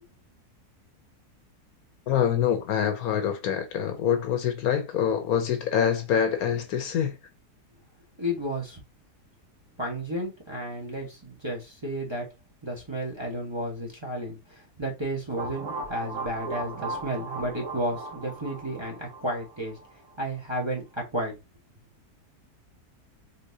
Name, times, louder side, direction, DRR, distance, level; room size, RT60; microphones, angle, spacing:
voice 1, 2.1-7.2, left 8 dB, 70° left, 1.1 m, -25 dB
voice 2, 8.2-8.8 9.8-12.3 12.6-19.8 20.2-21.4, right 1 dB, 20° right, 1.2 m, -32 dB
sound 1, 15.4-20.1, right 3 dB, 55° right, 1.4 m, -37 dB
4.3 x 3.7 x 2.7 m
omnidirectional pair, 1.7 m